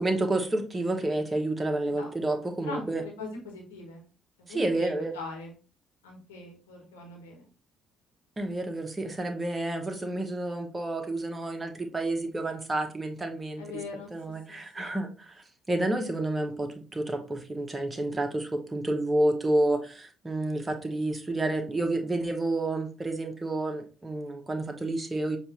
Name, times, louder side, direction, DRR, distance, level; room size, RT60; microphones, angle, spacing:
voice 1, 0.0-3.0 4.5-5.1 8.4-13.6 14.1-25.4, right 2 dB, 20° right, 1.1 m, -30 dB
voice 2, 2.6-4.0 4.5-5.5 6.0-7.4 13.6-14.1 14.5-15.0, left 3 dB, 75° left, 1.2 m, -41 dB
6.7 x 2.6 x 2.9 m
figure-of-eight pair, 45°, 0 cm